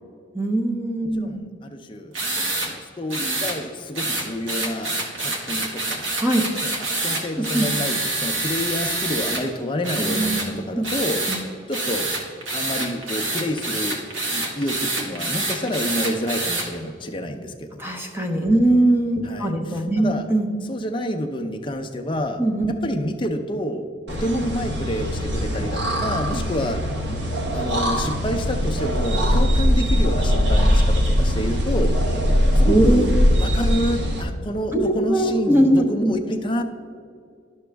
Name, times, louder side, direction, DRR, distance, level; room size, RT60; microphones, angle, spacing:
voice 1, 0.3-1.4 6.2-6.5 7.4-7.7 10.1-10.4 10.7-10.9 11.3-11.4 17.8-20.5 22.4-22.7 26.3-26.4 32.7-33.3 34.7-36.1, right 1 dB, 10° right, 2 dB, 0.8 m, -21 dB
voice 2, 1.2-6.0 6.6-11.2 11.7-12.1 12.5-14.0 14.3-17.8 19.2-20.3 20.7-22.4 22.7-26.9 27.5-32.0 32.6-36.6, left 1 dB, 25° left, 5 dB, 0.5 m, -28 dB
sound 1, 2.1-2.7 3.1-3.6 4.0-9.4 9.8-10.5 10.8-11.4 11.7-16.7, right 2 dB, 75° right, 1.5 m, -26 dB
sound 2, 24.1-34.2, equal, 60° right, 1.0 m, -21 dB
11.5 x 6.1 x 3.4 m, 2.3 s
head